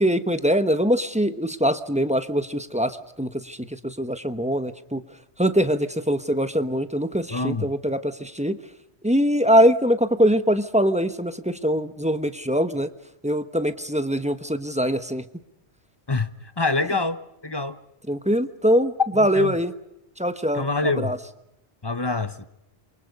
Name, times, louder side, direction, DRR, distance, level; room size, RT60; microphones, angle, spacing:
voice 1, 0.0-5.0 5.4-8.6 9.0-12.9 13.2-15.2 18.1-19.7 20.2-21.2, equal, 5° right, 1.0 m, -23 dB
voice 2, 7.3-7.7 16.1-17.8 19.1-19.6 20.5-21.2 21.8-22.5, left 3 dB, 20° left, 1.0 m, -26 dB
28.5 x 24.0 x 5.3 m
omnidirectional pair, 1.2 m